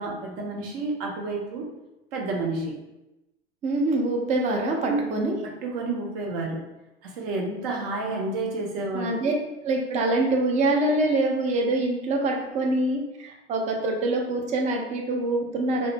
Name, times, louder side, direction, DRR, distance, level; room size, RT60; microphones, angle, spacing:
voice 1, 0.0-1.7 2.1-2.7 4.8-5.0 5.4-6.6 7.0-9.2, right 3 dB, 50° right, 0 dB, 0.8 m, -30 dB
voice 2, 3.6-5.4 8.9-9.3 9.6-15.9, right 2 dB, 20° right, 1 dB, 0.4 m, -25 dB
2.4 x 2.1 x 2.9 m, 0.96 s
figure-of-eight pair, 85°, 34 cm